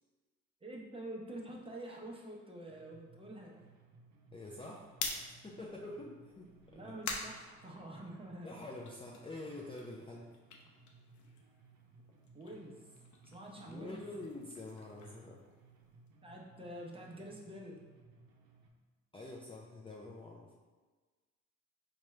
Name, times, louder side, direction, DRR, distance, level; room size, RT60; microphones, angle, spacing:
voice 1, 0.6-3.6 6.7-8.5 12.3-12.8 13.2-14.0 16.2-17.8, right 1 dB, 20° right, -2 dB, 0.7 m, -47 dB
sound 1, 2.7-18.7, right 4 dB, 90° right, 0.5 m, -62 dB
voice 2, 4.3-4.9 5.3-6.9 8.4-10.3 13.6-15.4 19.1-20.5, left 2 dB, 20° left, -3 dB, 0.4 m, -47 dB
sound 2, 4.9-8.3 8.7-11.7 11.9-16.1, left 4 dB, 70° left, 0.6 m, -46 dB
4.3 x 2.3 x 3.1 m, 1.3 s
cardioid pair, 90°, 30 cm